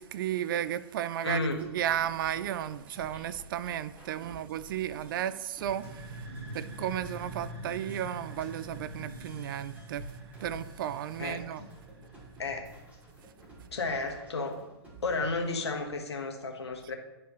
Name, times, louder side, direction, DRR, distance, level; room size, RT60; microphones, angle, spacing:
voice 1, 0.0-5.9 6.5-10.1 10.4-11.6, right 11 dB, 55° right, 0.4 m, -33 dB
voice 2, 1.2-1.6 4.3-4.4 7.5-7.6 11.2-11.4 12.4-12.7 13.7-14.6 15.0-16.9, left 3 dB, 85° left, 1.3 m, -33 dB
sound 1, 1.3-15.7, equal, 10° right, 2.5 m, -51 dB
sound 2, 5.6-13.2, right 1 dB, 75° right, 1.7 m, -45 dB
11.0 x 4.7 x 3.1 m
hypercardioid pair, 120°, 14 cm